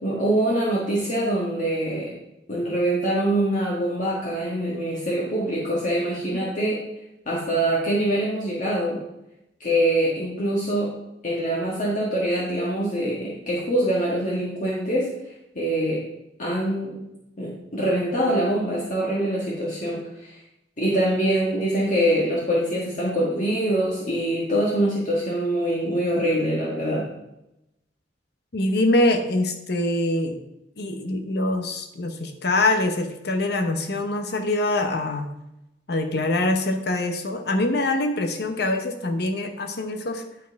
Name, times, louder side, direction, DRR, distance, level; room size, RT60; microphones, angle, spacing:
voice 1, 0.0-2.1 2.5-6.8 7.2-9.0 9.6-10.9 11.2-15.1 15.5-16.0 16.4-17.0 17.4-20.4 20.8-27.1, right 1 dB, 45° left, -5 dB, 1.6 m, -24 dB
voice 2, 28.5-30.4 30.8-35.3 35.9-40.2, left 2 dB, 65° left, 6 dB, 0.9 m, -24 dB
11.0 x 4.3 x 4.6 m, 0.89 s
head